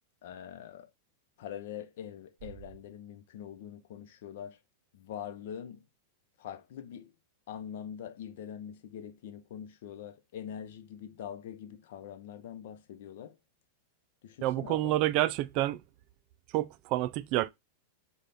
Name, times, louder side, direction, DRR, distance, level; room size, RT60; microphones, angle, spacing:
voice 1, 0.2-0.9 1.4-4.6 4.9-5.8 6.4-7.1 7.5-13.4 14.2-15.1, left 9 dB, 65° left, 0.6 m, -43 dB
voice 2, 14.4-15.8 16.5-17.5, right 15 dB, 45° right, 0.3 m, -28 dB
6.7 x 2.3 x 3.4 m
supercardioid pair, 135°, 0 cm